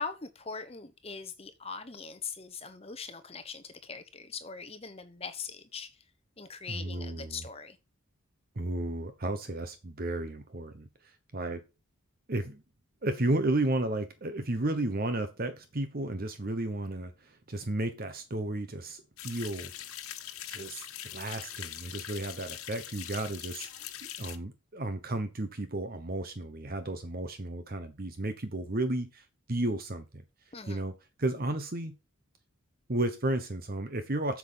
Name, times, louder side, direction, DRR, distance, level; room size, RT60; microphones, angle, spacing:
voice 1, 0.0-5.9 6.4-7.8 30.5-30.8, left 5 dB, 25° left, 1.1 m, -41 dB
voice 2, 6.7-7.5 8.6-11.6 12.3-12.6 13.0-19.7 20.5-23.8 24.2-30.2 30.7-31.9 32.9-34.4, right 2 dB, 45° right, 0.9 m, -33 dB
sound 1, 19.2-24.4, left 11 dB, 90° left, 1.2 m, -42 dB
8.0 x 7.2 x 5.6 m
head